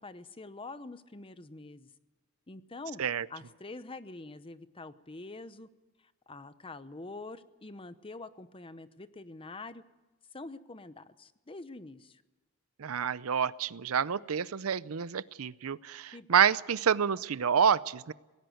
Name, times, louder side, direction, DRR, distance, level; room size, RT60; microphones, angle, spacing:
voice 1, 0.0-1.9 2.5-3.0 3.3-5.7 6.0-9.8 10.3-12.2 16.1-16.3, left 3 dB, 25° left, 13 dB, 0.8 m, -45 dB
voice 2, 12.8-18.1, right 7 dB, 85° right, 18 dB, 0.6 m, -28 dB
18.5 x 17.0 x 9.3 m, 1.1 s
head